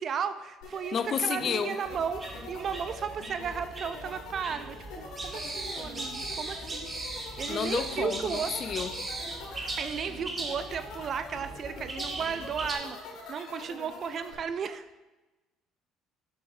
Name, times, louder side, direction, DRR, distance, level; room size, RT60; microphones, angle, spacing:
voice 1, 0.0-8.5 9.8-15.0, right 7 dB, 50° right, 11 dB, 0.4 m, -35 dB
Strange Loop, 0.6-14.3, left 3 dB, 70° left, 2.1 m, -44 dB
voice 2, 0.9-1.8 7.5-8.9, left 7 dB, 50° left, 11 dB, 0.5 m, -30 dB
sound 1, 1.8-12.8, right 2 dB, 30° right, 1.5 m, -39 dB
7.7 x 6.9 x 2.7 m, 1.1 s
hypercardioid pair, 70°, 0 cm